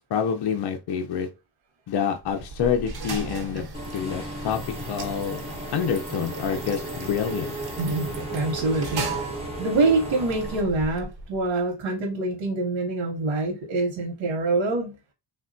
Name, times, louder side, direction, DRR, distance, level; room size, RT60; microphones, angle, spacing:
voice 1, 0.1-1.3 1.9-3.6 3.9-4.6 4.9-5.4 5.7-7.5, left 7 dB, 60° left, 0.6 m, -27 dB
sound 1, 2.2-11.5, right 3 dB, 55° right, 0.9 m, -37 dB
Engine / Mechanisms, 3.7-10.6, right 1 dB, 15° right, 1.1 m, -35 dB
voice 2, 7.8-15.0, right 3 dB, 75° right, 0.9 m, -25 dB
3.3 x 2.2 x 2.5 m
cardioid pair, 110°, 46 cm